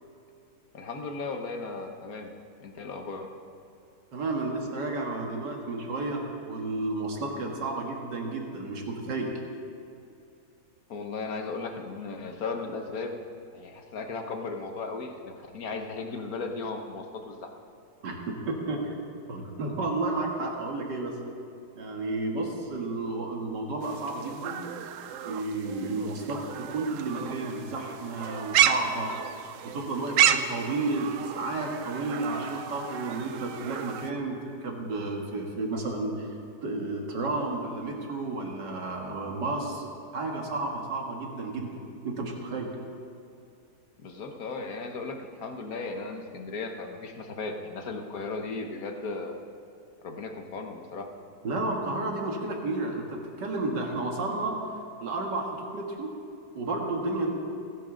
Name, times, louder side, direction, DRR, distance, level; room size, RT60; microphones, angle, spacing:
voice 1, 0.7-2.3 2.6-3.3 10.9-13.2 13.5-17.5 44.0-49.4 50.0-51.1, left 3 dB, 60° left, 4 dB, 1.6 m, -36 dB
voice 2, 4.1-9.4 18.0-18.9 19.3-21.2 21.8-24.7 25.2-29.1 29.6-36.3 36.6-39.8 40.1-42.7 51.4-54.6 55.0-56.1 56.5-57.3, right 2 dB, 85° right, 1 dB, 2.3 m, -32 dB
sound 1, 23.8-34.1, right 10 dB, 65° right, 0.8 m, -31 dB
29.5 x 10.5 x 3.9 m, 2.6 s
omnidirectional pair, 1.8 m